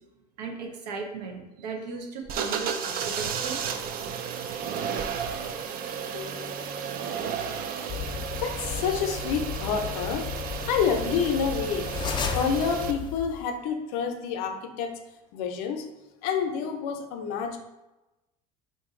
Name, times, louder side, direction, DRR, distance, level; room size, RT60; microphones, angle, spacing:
voice 1, 0.4-3.6, right 4 dB, 85° right, 2 dB, 0.6 m, -36 dB
sound 1, 2.3-12.9, right 7 dB, 45° right, 0.4 m, -33 dB
voice 2, 6.0-7.0 7.3-7.4 8.4-11.9 12.3-15.0 15.3-15.9 16.2-17.6, left 6 dB, 70° left, 5 dB, 0.5 m, -29 dB
sound 2, 7.9-13.5, left 8 dB, 25° left, 0.4 m, -35 dB
2.9 x 2.6 x 3.6 m, 1.0 s
hypercardioid pair, 75°, 20 cm